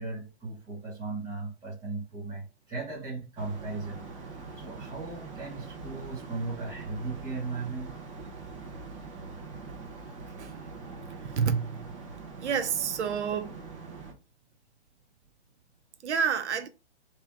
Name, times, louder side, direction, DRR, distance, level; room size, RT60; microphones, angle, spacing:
voice 1, 0.0-7.9, right 3 dB, 10° right, 1.2 m, -37 dB
sound 1, 3.4-14.1, right 4 dB, 30° right, 1.0 m, -43 dB
voice 2, 11.2-11.7 12.4-13.6 16.0-16.7, right 6 dB, 85° right, 0.8 m, -28 dB
3.5 x 3.0 x 4.6 m
hypercardioid pair, 170°, 34 cm